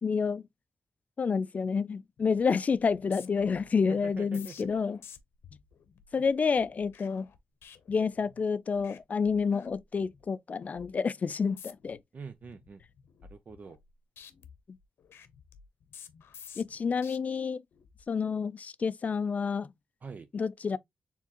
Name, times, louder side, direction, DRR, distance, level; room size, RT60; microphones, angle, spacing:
voice 1, 0.0-0.4 1.2-5.0 6.1-7.3 7.9-12.0 14.7-14.8 16.6-17.6 18.1-19.7 20.3-20.8, left 5 dB, 40° left, 0.4 m, -29 dB
sound 1, 2.2-2.5 2.7-8.5 8.8-9.0 9.3-10.2 10.6-10.9 11.4-12.0 12.4-13.9 14.2-17.2 17.7-18.0, left 7 dB, 90° left, 0.7 m, -53 dB
voice 2, 3.9-4.7 12.1-12.8 13.3-13.8 20.0-20.3, right 5 dB, 45° right, 0.5 m, -44 dB
4.5 x 3.5 x 2.9 m
wide cardioid pair, 115°, 4 cm